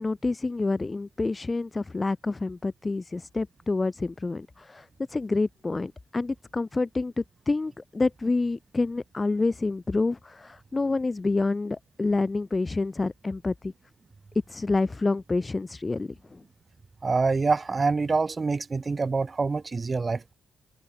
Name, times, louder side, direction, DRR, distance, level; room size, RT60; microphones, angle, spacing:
voice 1, 0.0-13.7 14.5-16.4, left 3 dB, 25° left, 2.1 m, -28 dB
voice 2, 17.0-20.3, right 4 dB, 35° right, 0.8 m, -26 dB
hypercardioid pair, 45°, 0 cm